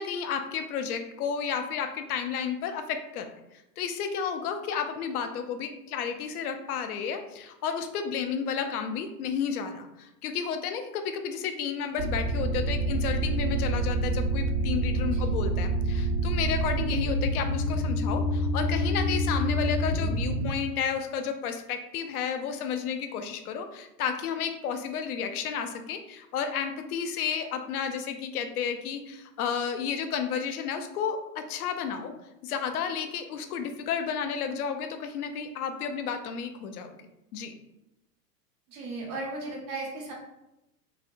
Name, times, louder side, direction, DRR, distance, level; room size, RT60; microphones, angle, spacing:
voice 1, 0.0-32.1 32.4-36.9 37.3-37.5, left 7 dB, 65° left, 7 dB, 0.6 m, -32 dB
sound 1, 12.0-20.5, right 1 dB, 75° right, 0.7 m, -27 dB
voice 2, 38.7-40.1, right 2 dB, 20° right, -2 dB, 0.3 m, -36 dB
3.1 x 2.7 x 2.5 m, 0.91 s
hypercardioid pair, 110°, 48 cm